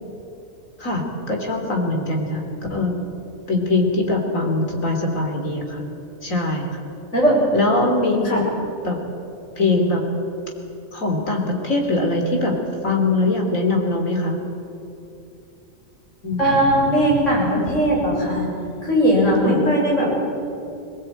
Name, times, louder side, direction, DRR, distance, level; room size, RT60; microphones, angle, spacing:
voice 1, 0.8-3.0 3.5-5.8 6.2-6.8 7.5-8.4 8.8-9.0 9.6-10.0 10.9-12.6 12.8-14.4 16.2-16.4 19.4-19.6, left 2 dB, 80° left, 2 dB, 3.5 m, -22 dB
voice 2, 16.3-18.5 18.8-20.1, equal, 65° left, -4 dB, 7.3 m, -18 dB
22.0 x 19.0 x 9.0 m, 2.7 s
omnidirectional pair, 1.4 m